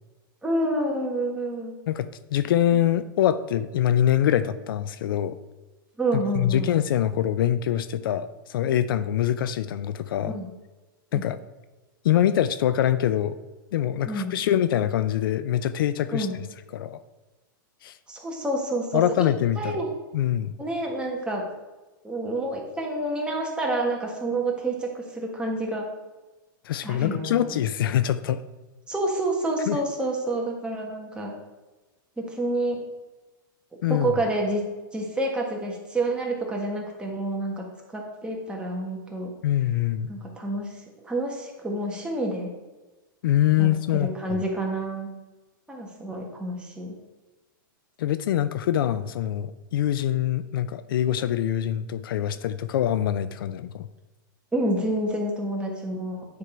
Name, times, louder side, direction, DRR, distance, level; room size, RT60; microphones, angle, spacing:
voice 1, 0.4-1.7 6.0-6.8 10.3-10.5 11.1-11.2 14.0-14.3 16.1-16.3 18.1-19.3 19.6-19.9 20.6-21.4 22.0-25.9 26.8-27.6 28.9-31.3 32.2-32.8 33.9-34.6 34.9-37.6 37.9-39.3 40.1-40.8 41.0-42.5 43.6-43.7 44.0-45.1 45.7-46.9 54.5-56.4, right 1 dB, 10° right, -1 dB, 1.4 m, -28 dB
voice 2, 1.9-5.4 6.1-10.3 11.1-11.4 12.0-13.4 13.7-16.3 16.7-17.0 17.8-17.9 18.9-19.8 20.1-20.5 26.6-28.4 29.7-29.8 33.8-34.1 39.4-40.1 43.2-44.4 48.0-53.9, left 11 dB, 80° left, 13 dB, 0.4 m, -24 dB
9.4 x 3.8 x 4.3 m, 1.2 s
supercardioid pair, 140°, 11 cm